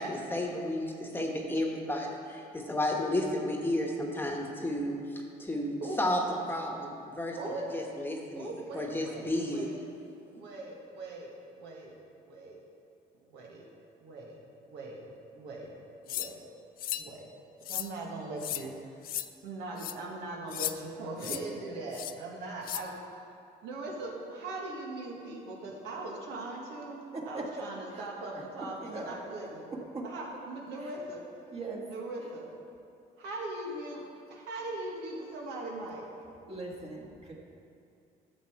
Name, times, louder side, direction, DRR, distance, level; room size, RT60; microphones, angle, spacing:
voice 1, 0.0-6.2 6.5-9.8, left 1 dB, 10° left, 1 dB, 1.2 m, -33 dB
voice 2, 7.4-7.7 8.3-9.8 10.2-12.0 12.3-12.6 13.3-13.6 14.0-14.4 14.6-15.0 15.3-15.7 16.0-16.4 16.9-17.3 17.7-18.7 19.4-22.9 23.6-29.7 30.0-31.2 31.9-32.5 33.2-36.1, right 2 dB, 80° right, -2 dB, 1.7 m, -40 dB
sound 1, 16.1-16.3 16.8-17.1 17.6-17.9 18.4-18.6 19.0-19.3 19.8-19.9 20.5-20.7 21.2-21.4 21.9-22.1 22.6-22.8, left 13 dB, 60° left, 0.4 m, -35 dB
voice 3, 27.1-27.4 27.9-28.0 28.3-28.4 28.8-29.3 29.9-30.0 30.8-30.9 31.5-31.8 36.5-37.3, right 3 dB, 35° right, -2 dB, 1.8 m, -40 dB
11.5 x 7.0 x 4.6 m, 2.6 s
cardioid pair, 110°, 17 cm